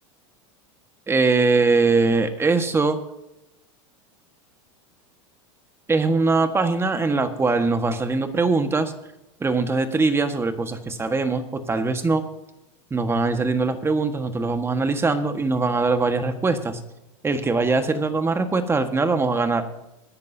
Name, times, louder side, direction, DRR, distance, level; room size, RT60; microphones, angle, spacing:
voice 1, 1.1-3.0 5.9-8.9 9.4-12.2 12.9-16.8 17.2-19.6, right 3 dB, 15° right, 8 dB, 1.5 m, -22 dB
22.5 x 11.0 x 2.8 m, 0.91 s
hypercardioid pair, 110°, 16 cm